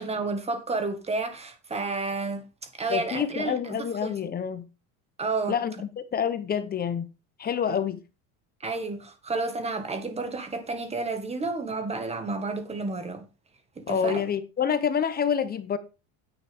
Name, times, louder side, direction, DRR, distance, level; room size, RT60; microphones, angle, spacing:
voice 1, 0.0-2.5 2.8-4.1 5.2-5.6 7.7-7.8 8.6-13.2 13.8-14.2, right 3 dB, 15° right, 1.7 m, -31 dB
voice 2, 2.9-4.6 5.5-7.1 7.4-8.0 13.9-15.8, left 7 dB, 25° left, 0.8 m, -27 dB
9.7 x 8.7 x 3.5 m
cardioid pair, 145°, 38 cm